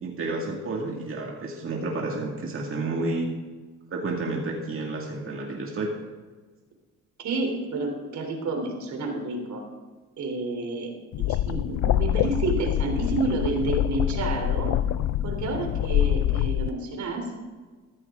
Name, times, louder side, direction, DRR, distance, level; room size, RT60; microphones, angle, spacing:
voice 1, 0.0-3.3 3.9-5.9, right 2 dB, 45° right, -1 dB, 2.2 m, -30 dB
voice 2, 7.2-9.6 10.2-10.9 11.2-14.7 15.2-17.3, right 3 dB, 70° right, 3 dB, 3.4 m, -29 dB
sound 1, 11.1-16.7, left 12 dB, 65° left, 0.5 m, -25 dB
14.0 x 14.0 x 3.7 m, 1.4 s
cardioid pair, 90°, 30 cm